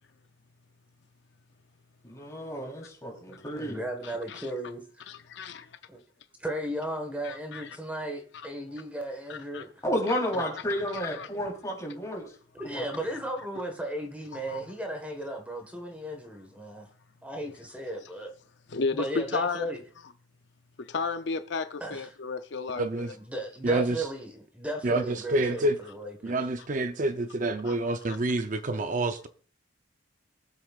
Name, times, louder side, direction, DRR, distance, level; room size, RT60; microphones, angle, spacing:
voice 1, 2.0-3.8 9.8-12.3 12.6-12.8, equal, 15° left, 3.6 m, -31 dB
voice 2, 3.3-5.1 5.9-6.0 6.4-9.7 10.3-10.5 11.3-11.4 12.5-16.9 17.2-18.3 18.9-19.8 21.8-22.1 23.1-26.4, right 1 dB, 5° right, 1.5 m, -36 dB
voice 3, 4.0-4.5 5.1-5.8 7.2-7.8 9.3-9.6 10.9-11.3 14.3-14.6 18.7-19.7 20.8-23.1 27.6-27.7, left 4 dB, 60° left, 0.5 m, -33 dB
voice 4, 22.8-23.1 23.6-24.1 24.8-25.8 26.2-29.3, right 2 dB, 40° right, 0.6 m, -28 dB
22.5 x 7.8 x 2.4 m
head